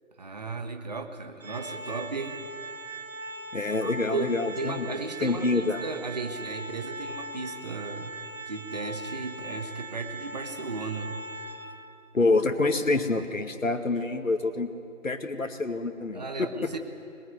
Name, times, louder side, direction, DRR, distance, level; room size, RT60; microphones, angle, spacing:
voice 1, 0.2-2.4 3.7-11.2 16.1-16.8, right 3 dB, 30° right, 7 dB, 1.4 m, -35 dB
Organ, 1.4-12.1, right 1 dB, 90° right, 1.3 m, -40 dB
voice 2, 3.5-4.8 5.2-5.8 12.1-14.7 15.0-16.7, left 3 dB, 80° left, 6 dB, 2.1 m, -27 dB
21.0 x 21.0 x 9.5 m, 2.6 s
figure-of-eight pair, 170°, 39 cm